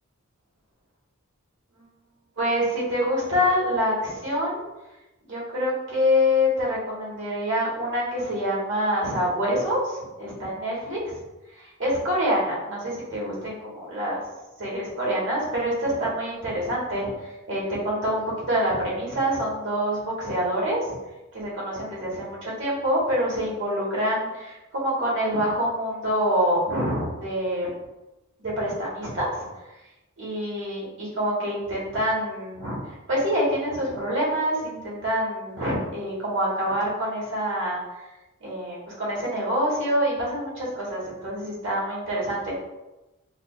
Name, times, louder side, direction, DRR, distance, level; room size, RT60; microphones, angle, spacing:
voice 1, 2.4-4.6 5.3-11.0 11.6-14.2 14.6-17.1 17.5-20.9 21.3-27.7 28.6-29.5 30.2-32.8 33.1-37.8 38.4-42.5, equal, 65° right, -5 dB, 1.3 m, -26 dB
4.8 x 2.4 x 2.3 m, 1.0 s
head